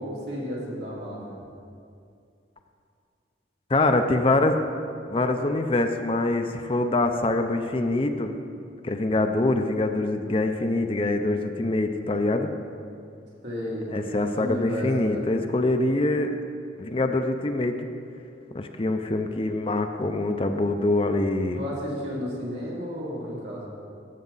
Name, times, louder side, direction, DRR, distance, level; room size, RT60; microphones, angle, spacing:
voice 1, 0.0-1.4 13.4-15.3 21.5-23.7, equal, 80° right, -6 dB, 2.9 m, -32 dB
voice 2, 3.7-4.6 5.1-8.3 8.8-12.5 13.9-16.3 16.8-17.9 18.5-21.6, left 2 dB, 30° left, 6 dB, 0.5 m, -24 dB
13.0 x 8.2 x 4.0 m, 2.4 s
head